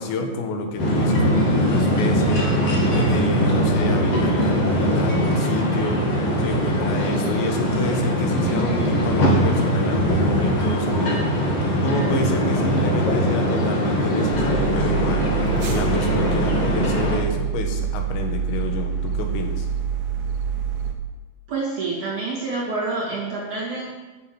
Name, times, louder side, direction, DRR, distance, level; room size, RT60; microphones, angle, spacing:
voice 1, 0.0-2.5 2.9-6.0 6.4-11.3 11.8-15.3 15.7-19.7, left 3 dB, 80° left, 4 dB, 4.2 m, -28 dB
sound 1, 0.8-17.2, equal, 45° left, 2.1 m, -21 dB
sound 2, 14.3-20.9, right 7 dB, 65° right, 1.9 m, -26 dB
voice 2, 21.5-23.9, right 3 dB, 45° right, -7 dB, 3.8 m, -27 dB
12.5 x 7.8 x 7.9 m, 1.2 s
omnidirectional pair, 5.8 m